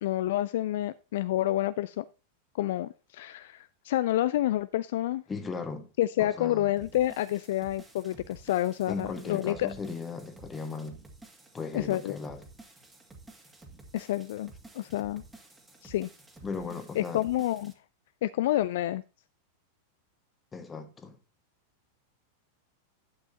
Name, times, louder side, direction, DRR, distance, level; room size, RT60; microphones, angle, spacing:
voice 1, 0.0-2.1 2.5-5.2 6.0-9.7 11.7-12.2 13.9-15.2 15.8-16.1 17.0-17.7 18.2-19.0, left 14 dB, 55° left, 0.3 m, -29 dB
voice 2, 5.3-5.9 6.2-6.7 8.9-11.0 11.5-12.4 16.4-17.2 20.5-21.2, left 4 dB, 15° left, 1.5 m, -37 dB
Spyre Noisy Break, 6.8-17.7, right 2 dB, 10° right, 2.1 m, -52 dB
11.5 x 8.0 x 2.8 m
figure-of-eight pair, 90°, 0 cm